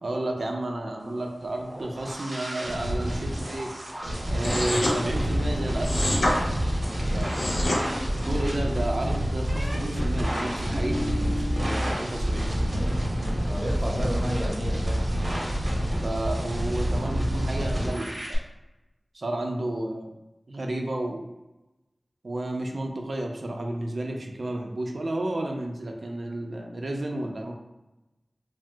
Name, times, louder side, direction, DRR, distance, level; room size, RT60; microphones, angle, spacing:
voice 1, 0.0-3.7 4.3-6.6 6.8-7.4 8.1-12.8 13.9-14.2 16.0-18.4 19.1-20.1 20.5-21.2 22.2-27.5, right 1 dB, 70° right, 1 dB, 0.5 m, -32 dB
sound 1, 1.4-18.4, equal, 50° right, 0.8 m, -28 dB
sound 2, 4.4-5.0 5.8-6.3 7.2-7.8, left 1 dB, 80° left, 0.6 m, -26 dB
sound 3, 7.7-8.5 9.5-9.8 10.4-11.9 12.2-12.8, left 1 dB, 20° left, 0.6 m, -35 dB
voice 2, 13.4-15.0 27.1-27.2, equal, 15° right, -2 dB, 0.7 m, -32 dB
2.7 x 2.0 x 3.4 m, 1.0 s
wide cardioid pair, 70°, 0 cm